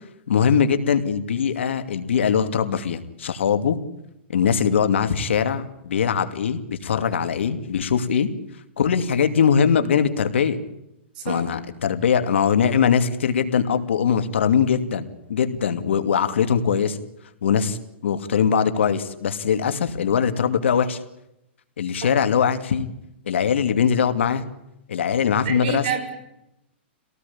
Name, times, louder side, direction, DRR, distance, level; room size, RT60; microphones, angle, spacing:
voice 1, 0.3-3.8 4.3-8.3 8.8-10.6 11.2-17.0 17.4-17.8 18.0-21.0 21.8-22.9 23.3-24.5 24.9-25.9, left 7 dB, 90° left, 9 dB, 2.5 m, -21 dB
voice 2, 25.4-26.1, right 6 dB, 50° right, 6 dB, 6.4 m, -27 dB
25.5 x 18.0 x 8.7 m, 0.85 s
hypercardioid pair, 160°, 6 cm